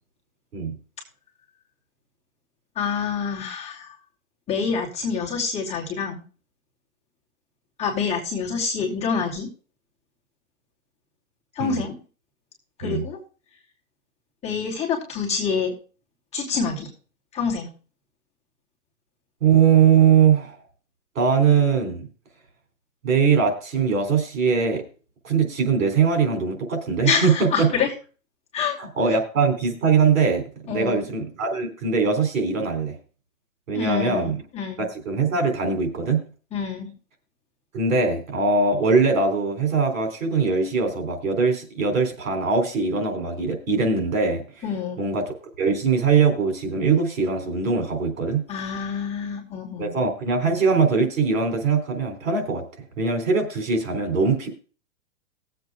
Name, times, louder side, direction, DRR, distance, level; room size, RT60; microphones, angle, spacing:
voice 1, 2.7-3.9 4.5-6.2 7.8-9.5 11.5-12.0 12.8-13.2 14.4-15.7 16.3-16.9 17.3-17.7 27.0-27.9 28.5-28.8 30.7-31.0 33.7-34.8 36.5-36.9 44.6-45.0 48.5-49.9, left 6 dB, 15° left, -3 dB, 2.8 m, -27 dB
voice 2, 19.4-20.5 21.2-22.1 23.0-24.8 25.2-27.7 28.8-30.4 30.7-33.0 33.7-34.3 34.8-36.3 37.7-44.4 45.0-45.2 45.6-48.4 49.8-52.6 53.0-54.5, right 5 dB, 75° right, 4 dB, 3.7 m, -21 dB
20.5 x 7.8 x 2.4 m, 0.37 s
hypercardioid pair, 150°, 40 cm